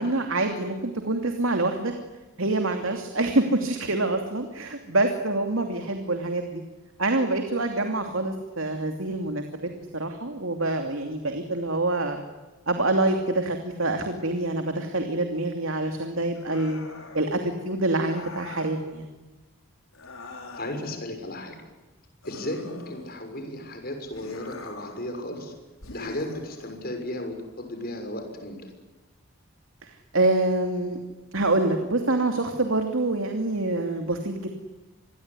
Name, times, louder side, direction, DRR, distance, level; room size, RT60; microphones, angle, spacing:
voice 1, 0.0-1.9 2.4-6.6 7.0-12.2 12.7-16.8 17.1-19.1 29.8-31.0 31.3-34.5, right 2 dB, 70° right, 5 dB, 2.8 m, -26 dB
sound 1, 16.3-17.3 18.0-18.8 19.9-21.0 22.2-23.4 24.1-25.1 25.8-26.8, left 3 dB, 75° left, 5.3 m, -43 dB
voice 2, 20.5-21.5 22.2-25.5 25.9-28.7, left 1 dB, 45° left, 5 dB, 6.4 m, -35 dB
27.0 x 22.0 x 9.8 m, 1.2 s
head